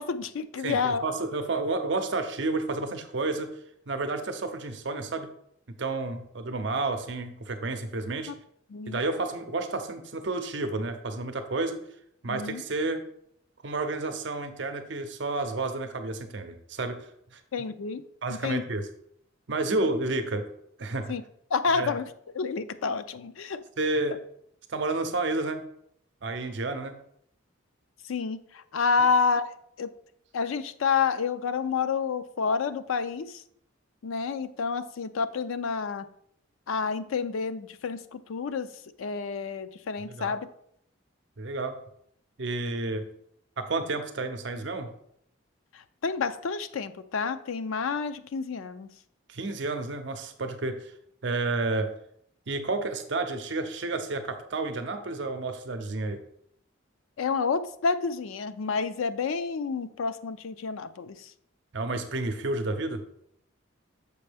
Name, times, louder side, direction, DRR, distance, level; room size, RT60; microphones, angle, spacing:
voice 1, 0.0-1.1 8.3-8.4 8.7-9.0 12.3-12.6 17.5-18.0 18.3-18.6 21.1-21.2 21.5-22.1 22.3-23.6 28.0-29.9 30.3-33.4 34.0-36.1 36.7-38.7 39.0-40.5 45.7-48.9 57.2-61.3, left 5 dB, 80° left, 12 dB, 0.4 m, -29 dB
voice 2, 0.6-3.6 3.9-5.3 5.8-8.3 8.9-11.8 12.2-13.1 13.6-17.4 18.2-18.9 19.5-20.5 20.8-21.1 21.7-21.9 23.8-24.2 24.7-25.7 26.2-26.9 40.2-40.4 41.4-41.8 42.4-43.0 43.6-44.9 49.3-50.9 51.2-51.9 52.5-56.2 61.7-63.1, right 3 dB, 60° right, 7 dB, 0.6 m, -30 dB
6.8 x 5.2 x 3.4 m, 0.71 s
head